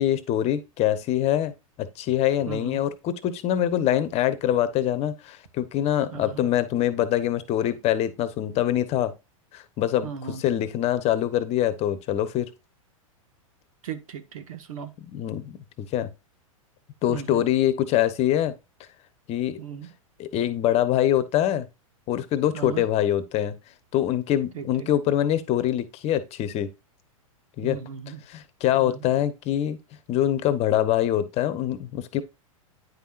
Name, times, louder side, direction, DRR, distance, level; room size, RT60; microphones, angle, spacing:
voice 1, 0.0-1.5 1.8-9.1 9.5-10.1 10.4-12.5 15.1-16.1 17.0-18.5 19.3-19.6 20.2-21.7 22.1-23.5 23.9-26.7 27.6-27.8 28.3-29.8 30.1-32.2, left 11 dB, 35° left, 1.0 m, -24 dB
voice 2, 2.4-2.8 6.1-6.5 10.0-10.4 13.8-14.9 17.1-17.4 19.6-19.9 22.5-22.8 24.5-24.9 27.6-28.2 28.8-29.1, right 8 dB, 75° right, 1.5 m, -37 dB
9.6 x 5.6 x 2.5 m
hypercardioid pair, 110°, 18 cm